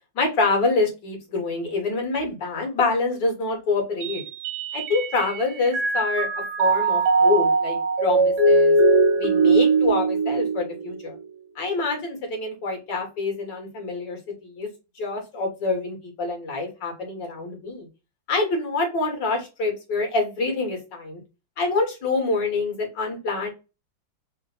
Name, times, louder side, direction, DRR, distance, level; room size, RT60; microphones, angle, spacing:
voice 1, 0.1-4.2 4.7-6.3 6.6-8.8 9.2-11.2 11.6-14.7 15.0-17.9 18.3-21.2 21.6-23.5, left 3 dB, 70° left, 1 dB, 2.1 m, -26 dB
Mallet percussion, 4.0-5.4 5.7-11.2, right 3 dB, 65° right, 1.3 m, -20 dB
3.9 x 2.1 x 4.0 m, 0.28 s
omnidirectional pair, 2.0 m